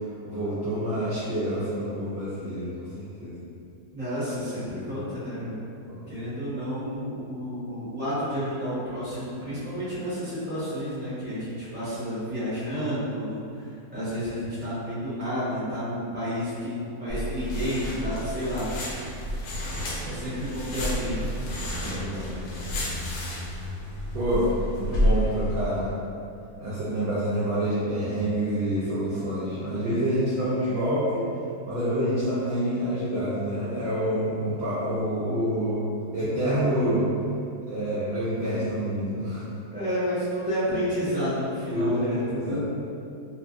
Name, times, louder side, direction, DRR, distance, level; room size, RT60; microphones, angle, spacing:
voice 1, 0.2-3.4 4.7-4.8 5.9-6.0 21.8-22.8 24.1-26.0 26.6-31.3 31.6-35.8 36.1-37.1 37.7-39.6 41.7-42.6, equal, 70° right, -10 dB, 0.6 m, -27 dB
voice 2, 3.9-5.5 6.1-13.7 13.9-18.7 20.1-21.3 39.7-42.6, equal, 10° right, -12 dB, 0.6 m, -30 dB
sound 1, 17.1-25.6, equal, 85° left, 1.1 m, -30 dB
2.5 x 2.4 x 2.4 m, 2.5 s
omnidirectional pair, 1.7 m